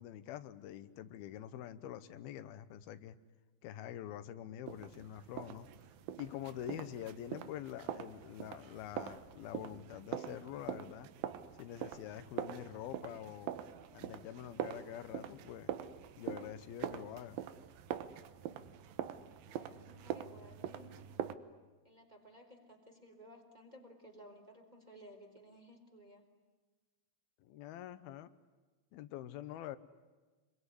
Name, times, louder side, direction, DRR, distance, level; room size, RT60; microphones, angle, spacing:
voice 1, 0.0-3.2 3.6-5.7 6.2-11.1 11.6-13.6 13.9-15.7 16.2-17.4 27.4-28.3 28.9-29.8, left 11 dB, 90° left, 12 dB, 2.9 m, -46 dB
sound 1, 4.7-21.3, right 10 dB, 80° right, 2.8 m, -44 dB
voice 2, 19.4-20.9 21.8-26.3, equal, 10° right, 1 dB, 3.6 m, -57 dB
26.0 x 23.0 x 9.9 m, 1.3 s
omnidirectional pair, 4.2 m